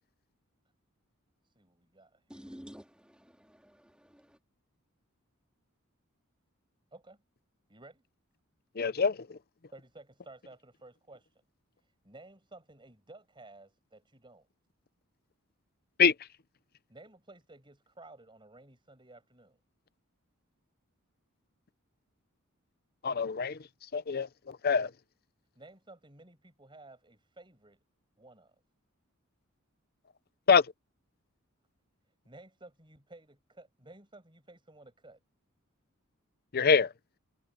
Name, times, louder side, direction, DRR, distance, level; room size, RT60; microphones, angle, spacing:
voice 1, 1.4-2.8 6.9-7.2 7.7-8.0 9.7-11.4 11.8-14.5 16.9-19.6 25.5-27.8 28.2-28.5 32.2-35.2, right 2 dB, 20° right, 6.8 m, -54 dB
voice 2, 2.3-4.4, equal, 5° right, 3.6 m, -51 dB
voice 3, 8.8-9.1 16.0-16.1 23.0-23.5 23.9-24.3 24.6-24.9 30.5-30.6 36.5-36.9, left 6 dB, 45° left, 0.6 m, -24 dB
head